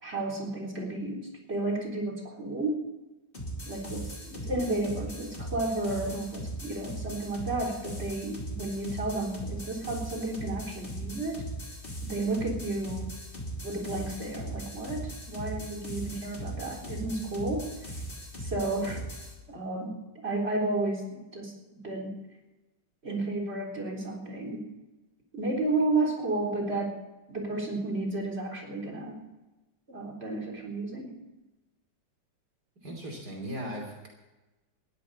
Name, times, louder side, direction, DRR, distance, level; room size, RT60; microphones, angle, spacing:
voice 1, 0.0-2.8 3.7-11.4 12.0-13.1 13.6-17.7 18.4-19.0 19.5-21.5 21.8-22.2 23.0-24.7 25.3-27.0 27.3-29.2 29.9-31.1, right 2 dB, 35° right, 0 dB, 4.1 m, -32 dB
sound 1, 3.3-19.3, right 1 dB, 30° left, 3.4 m, -39 dB
voice 2, 32.8-34.1, equal, 65° right, 1 dB, 3.6 m, -37 dB
20.5 x 15.5 x 4.2 m, 1.1 s
omnidirectional pair, 1.9 m